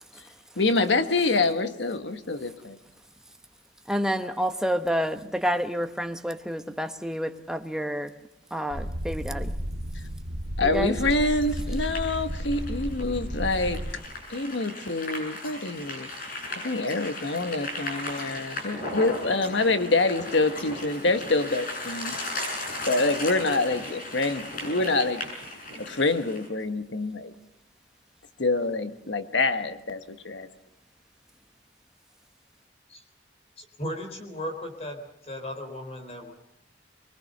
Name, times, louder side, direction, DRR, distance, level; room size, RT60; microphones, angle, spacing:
voice 1, 0.6-2.8 10.6-13.8 14.3-16.1 16.6-22.2 22.9-25.2 25.8-27.3 28.4-30.5, left 3 dB, 75° left, 1.4 m, -26 dB
voice 2, 3.9-8.1 8.5-9.6 10.6-10.9, equal, 5° right, 1.1 m, -29 dB
sound 1, 8.7-13.9, equal, 80° right, 2.2 m, -33 dB
sound 2, 11.0-26.5, left 2 dB, 50° left, 7.4 m, -36 dB
voice 3, 33.6-36.3, left 1 dB, 35° left, 4.0 m, -36 dB
24.0 x 22.5 x 6.7 m
head